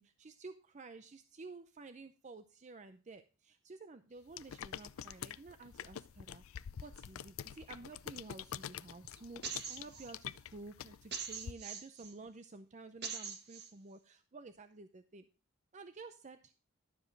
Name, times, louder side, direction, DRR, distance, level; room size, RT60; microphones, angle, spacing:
voice 1, 0.0-6.4 6.8-15.2 15.7-16.5, right 3 dB, 35° right, 9 dB, 0.5 m, -52 dB
sound 1, 4.3-11.5, left 9 dB, 75° left, 0.4 m, -47 dB
sound 2, 9.4-10.1 11.1-12.1 13.0-13.7, right 6 dB, 50° right, 1.4 m, -42 dB
12.0 x 7.3 x 3.9 m, 0.36 s
head